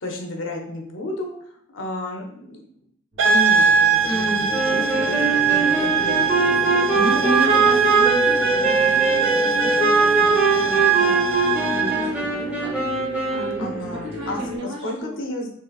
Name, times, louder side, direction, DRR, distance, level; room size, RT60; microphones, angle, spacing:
voice 1, 0.0-2.6 3.2-6.8 13.6-15.5, left 2 dB, 65° left, 1 dB, 0.6 m, -32 dB
sound 1, 3.1-14.6, left 1 dB, 55° right, 1.1 m, -34 dB
sound 2, 3.2-12.1, right 6 dB, 75° right, 0.4 m, -21 dB
voice 2, 4.0-4.4 4.9-5.1 6.9-15.1, right 1 dB, 90° right, -10 dB, 1.4 m, -31 dB
Wind instrument woodwind instrument, 4.5-14.0, right 3 dB, 10° right, 0.8 m, -22 dB
3.7 x 2.4 x 2.3 m, 0.69 s
head